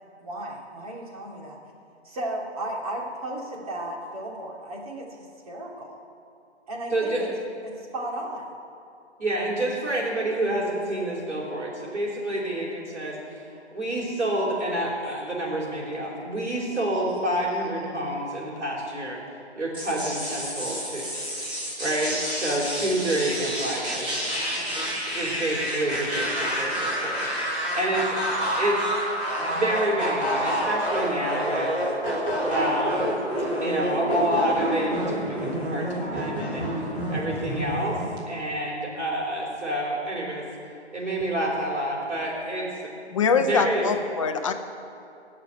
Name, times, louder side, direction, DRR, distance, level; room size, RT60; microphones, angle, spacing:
voice 1, 0.2-1.6 2.0-6.0 6.7-7.3 7.6-8.5, right 1 dB, 30° right, -2 dB, 2.6 m, -35 dB
voice 2, 6.9-7.3 9.2-13.2 13.7-19.2 19.6-21.1 21.8-24.2 24.7-24.9 25.1-28.2 28.6-28.9 29.4-31.8 32.5-33.1 33.6-38.0 38.3-40.4 40.9-42.7 43.3-43.9, right 1 dB, 85° right, -6 dB, 4.7 m, -28 dB
sound 1, 19.7-38.2, equal, 15° right, 2.8 m, -28 dB
voice 3, 43.1-44.5, left 5 dB, 30° left, 6 dB, 0.8 m, -23 dB
18.5 x 6.7 x 9.3 m, 2.6 s
figure-of-eight pair, 150°, 35 cm